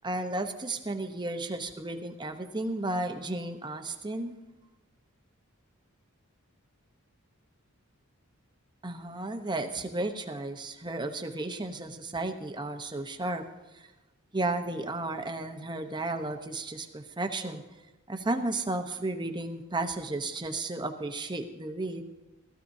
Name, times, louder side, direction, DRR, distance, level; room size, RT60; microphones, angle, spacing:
voice 1, 0.0-4.3 8.8-13.4 13.7-13.9 14.3-17.6 18.1-22.0, right 2 dB, 20° right, 6 dB, 0.9 m, -33 dB
19.5 x 14.0 x 2.7 m, 1.1 s
head